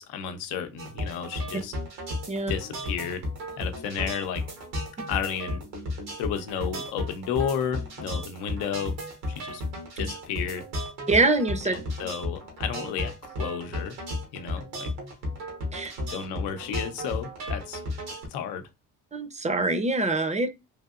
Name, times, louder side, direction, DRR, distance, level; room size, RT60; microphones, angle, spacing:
voice 1, 0.0-1.7 2.5-3.2 3.6-4.4 5.1-5.6 6.2-9.0 9.3-10.6 11.6-14.0 14.3-14.9 16.1-17.8 18.3-18.6, left 8 dB, 80° left, 0.7 m, -32 dB
sound 1, 0.8-18.3, left 1 dB, 85° right, 1.3 m, -34 dB
voice 2, 11.1-11.7 15.7-15.9 19.1-20.5, right 2 dB, 20° right, 0.6 m, -24 dB
3.4 x 2.7 x 2.4 m
hypercardioid pair, 55°, 38 cm